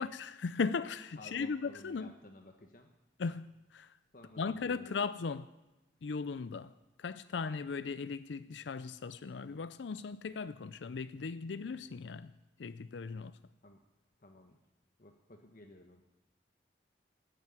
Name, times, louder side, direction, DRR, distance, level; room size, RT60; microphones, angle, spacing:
voice 1, 0.0-2.1 3.2-3.5 3.7-3.9 4.4-5.5 6.0-6.7 7.0-12.3 12.6-13.3, left 5 dB, 85° left, 0.5 m, -37 dB
voice 2, 1.2-2.9 4.1-5.0 13.6-13.8 14.2-14.6 15.0-16.0, left 2 dB, 50° left, 1.1 m, -54 dB
15.5 x 9.0 x 9.7 m
head